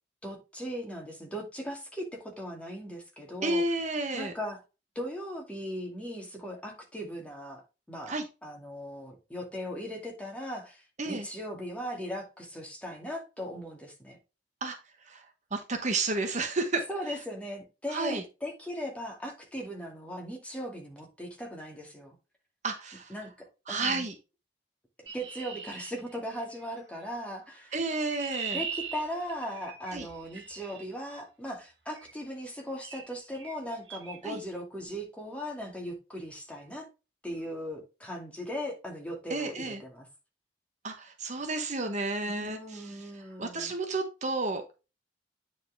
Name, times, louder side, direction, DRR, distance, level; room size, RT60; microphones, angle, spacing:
voice 1, 0.2-3.6 4.1-4.6 5.0-14.2 16.9-22.2 23.1-23.3 23.7-24.1 25.1-27.7 28.5-36.9 37.2-40.1 42.2-43.7, equal, 5° left, 2.2 m, -38 dB
voice 2, 3.4-4.3 8.1-8.2 11.0-11.2 14.6-14.8 15.1-15.2 15.5-16.8 17.9-18.2 22.6-23.1 23.7-24.1 27.7-28.6 29.9-30.1 34.2-34.4 39.3-39.8 40.8-43.1 43.4-44.6, right 3 dB, 40° right, 1.0 m, -31 dB
Chirp tweet, 25.1-26.7 27.7-30.9 32.0-32.2 32.8-33.1 33.3-33.6 33.9-34.2, right 6 dB, 85° right, 1.7 m, -40 dB
9.1 x 4.3 x 3.4 m
head